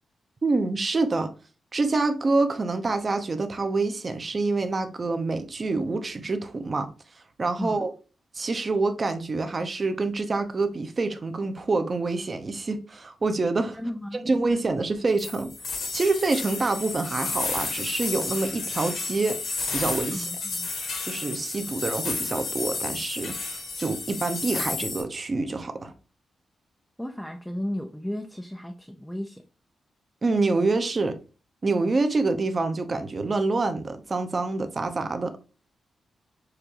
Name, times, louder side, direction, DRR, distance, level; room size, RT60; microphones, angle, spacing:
voice 1, 0.4-1.3 1.7-6.9 7.4-7.9 8.3-13.8 14.3-15.5 15.9-19.4 19.7-20.3 21.1-25.9 30.2-31.2 31.6-35.4, right 3 dB, 30° right, 0.7 m, -26 dB
voice 2, 13.7-14.3 20.1-20.7 27.0-29.4, equal, ahead, 0.5 m, -34 dB
sound 1, 15.2-25.0, left 4 dB, 75° left, 1.6 m, -32 dB
6.6 x 2.6 x 2.9 m
wide cardioid pair, 140°, 0 cm